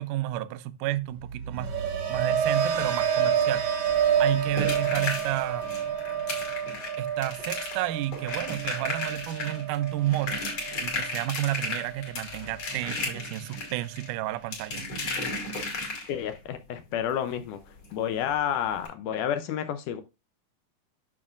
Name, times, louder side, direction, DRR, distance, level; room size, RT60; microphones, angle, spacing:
voice 1, 0.0-1.7 2.1-3.6 4.2-5.7 7.0-10.4 10.8-14.8, right 15 dB, 80° right, 1.9 m, -31 dB
sound 1, 1.2-11.3 11.6-12.1, right 8 dB, 65° right, 1.7 m, -29 dB
sound 2, 3.9-16.4 17.8-17.9 18.2-18.3 18.8-18.9, left 2 dB, 50° left, 3.2 m, -35 dB
voice 2, 16.1-17.6 17.9-20.0, left 9 dB, 80° left, 1.9 m, -30 dB
8.4 x 6.4 x 2.4 m
omnidirectional pair, 3.9 m